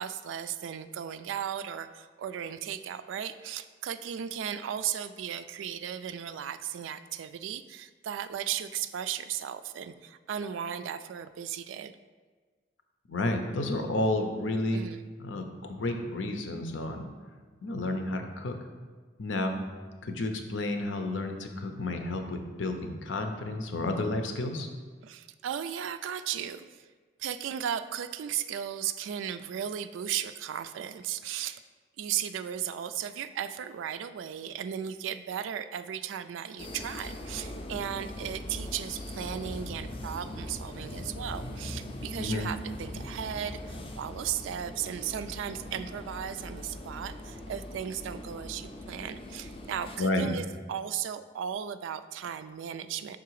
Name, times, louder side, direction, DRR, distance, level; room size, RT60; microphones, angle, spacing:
voice 1, 0.0-11.9 14.7-15.0 25.0-26.9 27.2-31.6 32.0-53.2, right 9 dB, 85° right, 12 dB, 0.3 m, -36 dB
voice 2, 13.1-14.8 15.2-17.1 17.6-18.6 19.2-19.6 20.0-24.7 42.2-42.5 50.0-50.3, left 2 dB, 90° left, 5 dB, 0.7 m, -31 dB
sound 1, 36.6-50.0, left 1 dB, 30° left, 0.5 m, -41 dB
5.8 x 3.8 x 4.7 m, 1.5 s
head